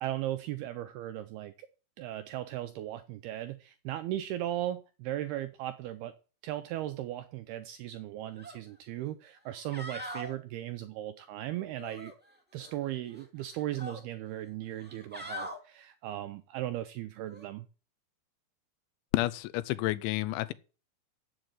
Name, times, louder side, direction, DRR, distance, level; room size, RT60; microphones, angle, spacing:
voice 1, 0.0-1.7 2.0-6.1 6.4-12.1 12.5-17.7, right 13 dB, 85° right, 2.3 m, -37 dB
sound 1, 8.4-8.6 9.0-9.1 9.5-10.3 11.8-12.7 13.1-14.0 14.7-15.6 17.3-17.5, equal, 10° right, 0.5 m, -43 dB
voice 2, 19.1-20.5, left 17 dB, 85° left, 3.1 m, -30 dB
7.9 x 7.9 x 8.8 m
omnidirectional pair, 5.2 m